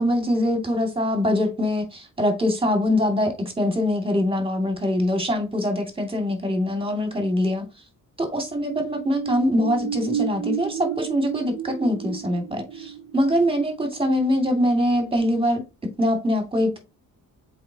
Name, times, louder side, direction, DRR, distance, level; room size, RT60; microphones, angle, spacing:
voice 1, 0.0-7.6 8.2-15.6 16.0-16.8, left 1 dB, 15° right, 2.4 m, -23 dB
sound 1, 8.5-14.8 15.2-15.3, right 9 dB, 40° right, 0.5 m, -32 dB
7.7 x 4.7 x 2.8 m
cardioid pair, 130°, 34 cm